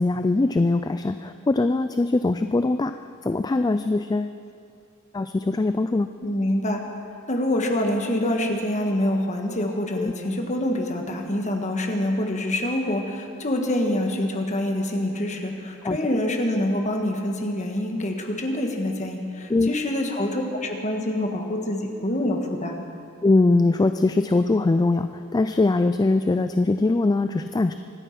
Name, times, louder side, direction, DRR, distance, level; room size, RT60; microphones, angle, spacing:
voice 1, 0.0-2.9 3.2-4.4 5.1-6.1 10.0-10.1 15.8-16.0 19.5-19.7 23.2-27.7, left 2 dB, 20° left, 9 dB, 0.3 m, -22 dB
voice 2, 6.2-6.8 7.3-22.8, left 1 dB, 35° left, 3 dB, 1.6 m, -26 dB
25.0 x 9.1 x 6.0 m, 2.4 s
head